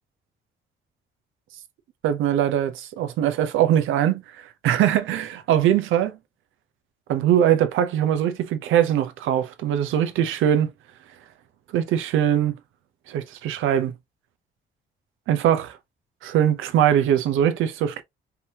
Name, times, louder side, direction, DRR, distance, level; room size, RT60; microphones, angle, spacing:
voice 1, 2.0-4.2 4.6-6.2 7.1-10.7 11.7-12.5 13.1-13.9 15.3-15.8 16.2-18.0, right 10 dB, 85° right, 0.8 m, -21 dB
5.2 x 2.9 x 2.8 m
cardioid pair, 90°, 20 cm